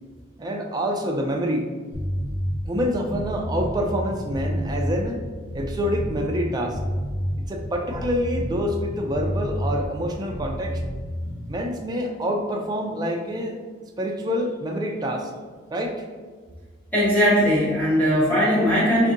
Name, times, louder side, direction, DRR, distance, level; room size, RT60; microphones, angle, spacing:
voice 1, 0.4-1.6 2.6-5.2 5.5-6.8 7.4-10.8 11.5-13.6 14.0-15.3 15.7-16.0, equal, 20° right, 1 dB, 0.4 m, -27 dB
sound 1, 1.9-11.5, equal, 60° left, 0.7 m, -29 dB
voice 2, 16.9-19.1, equal, 10° left, -9 dB, 1.3 m, -19 dB
4.9 x 2.6 x 2.5 m, 1.5 s
head